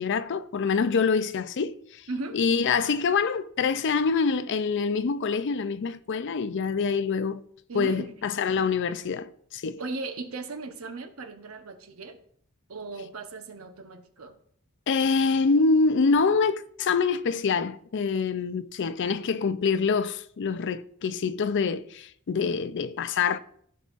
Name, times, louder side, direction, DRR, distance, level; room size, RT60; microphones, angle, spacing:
voice 1, 0.0-2.0 2.3-7.4 7.7-9.8 14.9-23.4, left 5 dB, 55° left, 0.4 m, -25 dB
voice 2, 2.1-2.4 7.7-8.2 9.8-12.2 12.7-14.4, right 3 dB, 75° right, 1.0 m, -37 dB
15.0 x 5.4 x 2.5 m
head